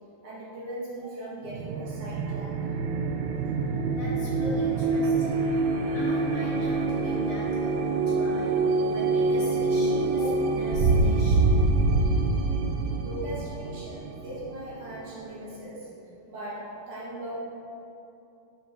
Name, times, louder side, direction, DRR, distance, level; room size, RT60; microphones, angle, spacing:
voice 1, 0.2-2.5 13.0-15.9 16.3-17.4, right 1 dB, 65° right, -7 dB, 2.6 m, -38 dB
sound 1, 1.5-15.0, right 3 dB, 85° right, 2.4 m, -25 dB
voice 2, 3.9-5.4 5.9-8.6 8.9-11.6, equal, 50° left, -8 dB, 2.7 m, -39 dB
6.5 x 5.3 x 6.2 m, 2.7 s
omnidirectional pair, 4.1 m